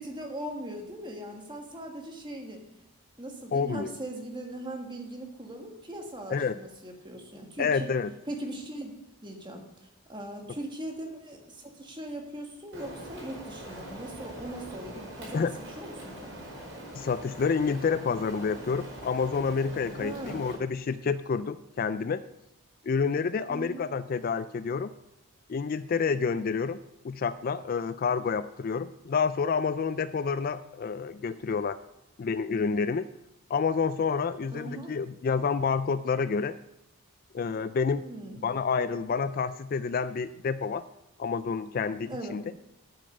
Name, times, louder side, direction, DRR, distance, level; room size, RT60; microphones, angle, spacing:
voice 1, 0.0-2.6 3.2-7.9 8.2-8.9 9.2-15.5 15.8-16.4 20.0-20.4 23.5-23.9 34.5-34.9 37.9-38.5 42.1-42.4, right 1 dB, 20° right, 3 dB, 1.6 m, -40 dB
voice 2, 3.5-3.9 6.3-6.6 7.6-8.1 15.3-15.5 16.9-22.2 22.9-24.9 25.5-31.8 32.2-33.0 33.5-36.5 37.3-38.0 38.4-40.8 41.2-42.4, left 5 dB, 40° left, 13 dB, 0.3 m, -29 dB
Rain, 12.7-20.6, equal, 55° right, 4.8 m, -43 dB
8.7 x 8.7 x 6.5 m, 0.90 s
head